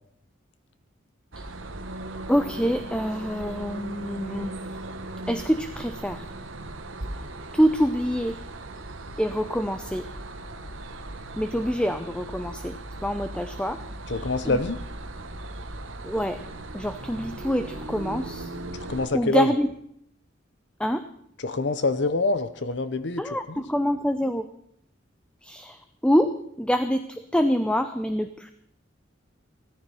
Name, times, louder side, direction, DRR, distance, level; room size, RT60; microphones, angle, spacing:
sound 1, 1.3-19.1, right 2 dB, 85° right, 1.6 m, -38 dB
voice 1, 2.3-4.8 5.3-6.3 7.5-8.4 9.2-10.1 11.4-12.8 13.0-13.8 14.2-14.6 16.0-16.4 16.7-18.5 19.1-19.7 20.8-21.0 23.2-24.5 25.4-28.5, equal, 5° left, 9 dB, 0.6 m, -26 dB
voice 2, 14.1-14.8 18.9-19.5 21.4-23.2 23.5-23.6, left 3 dB, 60° left, 12 dB, 0.8 m, -25 dB
16.5 x 14.0 x 5.6 m, 0.71 s
head